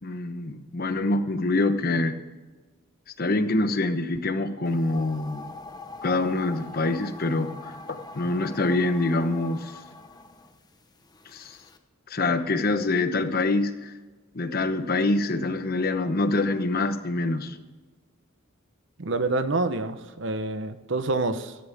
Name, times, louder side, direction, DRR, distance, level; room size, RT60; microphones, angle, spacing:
voice 1, 0.0-2.2 3.2-5.5 6.0-9.8 11.3-11.6 12.1-13.9 14.3-17.6, left 2 dB, 45° left, 9 dB, 1.0 m, -25 dB
sound 1, 4.6-11.8, left 3 dB, 20° left, 1.0 m, -44 dB
voice 2, 19.0-21.6, right 2 dB, 60° right, 10 dB, 1.0 m, -27 dB
17.0 x 14.5 x 3.5 m, 1.3 s
head